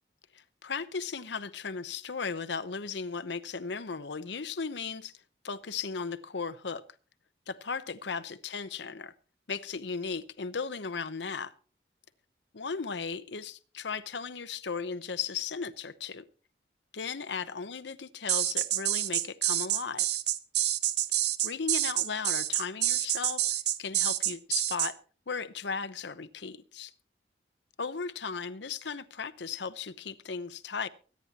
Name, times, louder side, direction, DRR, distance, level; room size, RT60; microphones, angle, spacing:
voice 1, 0.3-5.1 5.4-6.8 7.5-9.1 9.5-11.5 12.5-16.2 16.9-20.1 21.4-23.4 23.8-25.0 25.3-26.9 27.8-30.9, left 5 dB, 85° left, 0.8 m, -36 dB
sound 1, 18.3-24.9, right 12 dB, 70° right, 0.8 m, -28 dB
24.0 x 9.7 x 2.9 m
head